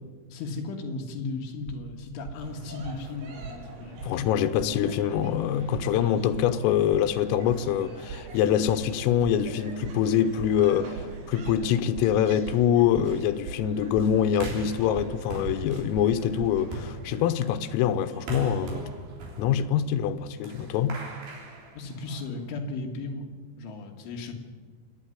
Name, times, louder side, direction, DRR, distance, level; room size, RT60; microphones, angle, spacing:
voice 1, 0.3-4.0 21.7-24.3, left 3 dB, 70° left, 4.2 m, -36 dB
sound 1, 1.7-1.9 2.2-2.5 2.8-3.1 3.4-3.7 4.0-4.2 4.6-4.8 5.2-5.4 5.7-6.0 6.3-6.6 6.9-7.2 7.5-7.7 8.1-8.3 8.7-8.9 9.2-9.5 9.8-10.1 10.4-10.6 10.9-11.2 11.4-11.7 11.9-12.2 12.4-12.7 12.9-13.2 13.4-13.7 13.9-14.2 14.4-14.7 14.9-15.2 15.4-15.7 15.9-16.6, right 6 dB, 85° right, 2.1 m, -39 dB
sound 2, 2.4-18.1, right 3 dB, 70° right, 5.6 m, -46 dB
voice 2, 4.0-18.9 19.4-21.0, left 9 dB, 90° left, 3.6 m, -25 dB
sound 3, 14.3-22.4, right 2 dB, 50° right, 5.0 m, -40 dB
26.0 x 10.0 x 10.0 m
omnidirectional pair, 5.8 m